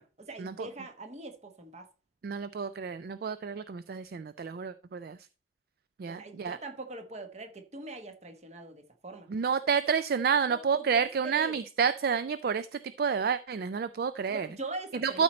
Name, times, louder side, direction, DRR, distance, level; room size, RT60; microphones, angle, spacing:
voice 1, 0.0-1.9 6.1-9.3 10.4-11.6 14.3-15.2, right 2 dB, 35° right, 1.1 m, -42 dB
voice 2, 2.2-5.2 6.0-6.6 9.3-12.7 13.0-14.5 15.0-15.2, right 6 dB, 50° right, 0.3 m, -29 dB
12.5 x 4.4 x 4.2 m
head